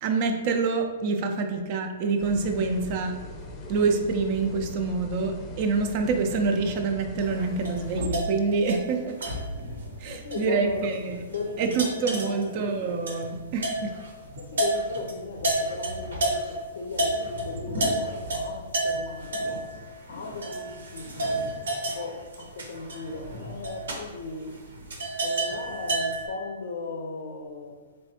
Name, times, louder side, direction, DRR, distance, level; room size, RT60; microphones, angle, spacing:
voice 1, 0.0-3.1 3.7-9.1 10.0-11.2 11.6-13.9, right 4 dB, 45° right, 0.5 m, -26 dB
sound 1, 2.2-8.0, left 2 dB, 25° left, 0.6 m, -40 dB
sound 2, 7.2-16.6 16.9-26.3, right 1 dB, 75° right, 0.8 m, -31 dB
voice 2, 10.0-10.8 11.3-12.4 14.4-19.7 20.1-24.6 25.2-27.8, left 3 dB, 70° left, 0.6 m, -37 dB
3.5 x 3.2 x 2.8 m
hypercardioid pair, 125°, 0 cm